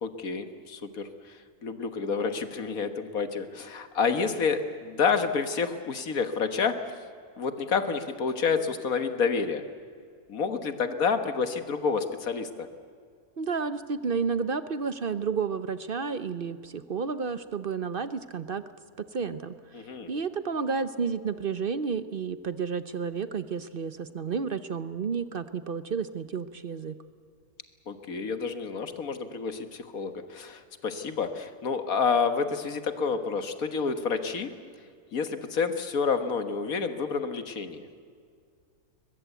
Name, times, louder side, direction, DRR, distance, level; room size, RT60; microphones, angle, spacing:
voice 1, 0.0-1.1 1.6-6.8 7.4-9.6 10.3-12.7 19.7-20.1 27.9-34.5 35.1-37.9, left 5 dB, 65° left, 9 dB, 1.8 m, -29 dB
voice 2, 13.4-18.6 19.1-27.0, right 5 dB, 45° right, 12 dB, 0.7 m, -31 dB
22.0 x 21.5 x 8.2 m, 2.2 s
omnidirectional pair, 1.7 m